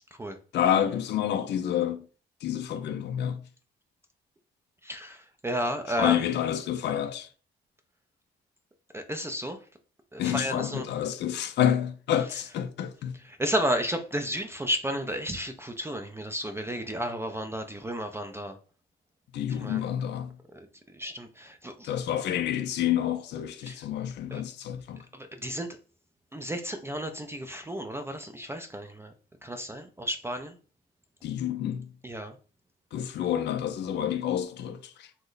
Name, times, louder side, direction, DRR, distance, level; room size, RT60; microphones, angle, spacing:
voice 1, 0.5-2.0 2.4-3.4 6.0-7.3 10.2-13.1 19.3-20.3 21.8-25.0 31.2-31.9 32.9-35.1, left 10 dB, 60° left, 0.4 m, -28 dB
voice 2, 4.8-6.3 8.9-9.6 10.1-10.9 13.1-18.6 19.5-19.9 20.5-20.7 20.9-21.9 23.6-23.9 24.3-24.4 25.1-25.8 26.3-29.1 29.4-30.6 32.0-32.4, equal, 15° right, 0.3 m, -33 dB
3.0 x 2.1 x 3.8 m
cardioid pair, 90°, 20 cm